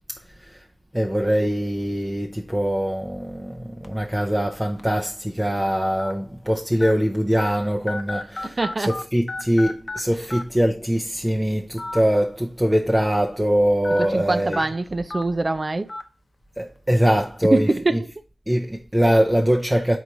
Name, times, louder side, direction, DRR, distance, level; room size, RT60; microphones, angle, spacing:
voice 1, 0.9-14.6 16.6-17.7 18.5-20.0, equal, 10° right, 0.7 m, -22 dB
sound 1, 3.8-4.1 4.8-4.9 6.0-6.1 6.8-6.9 7.4-7.5 7.9-9.0 9.3-10.0 10.3-10.4 11.7-12.0 12.4-12.5 13.8-14.1 14.5-14.6 15.1-15.2 15.9-16.0, left 2 dB, 50° left, 0.8 m, -31 dB
voice 2, 8.4-9.0 14.0-15.9 17.5-18.1, right 2 dB, 45° right, 0.5 m, -24 dB
4.6 x 4.1 x 5.6 m
wide cardioid pair, 85°, 0 cm